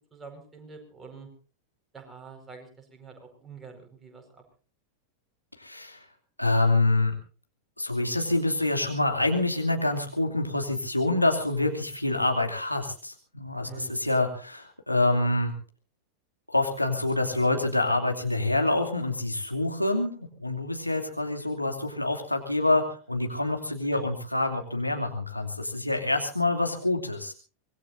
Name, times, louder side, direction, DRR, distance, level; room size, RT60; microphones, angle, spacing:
voice 1, 0.1-1.3 1.9-4.4 13.6-14.0 23.9-24.0, right 5 dB, 10° right, 3 dB, 5.1 m, -46 dB
voice 2, 5.6-6.0 6.4-7.1 7.8-15.5 16.5-27.3, left 2 dB, 85° left, 3 dB, 2.8 m, -26 dB
25.0 x 20.0 x 2.7 m, 0.37 s
figure-of-eight pair, 90°, 0 cm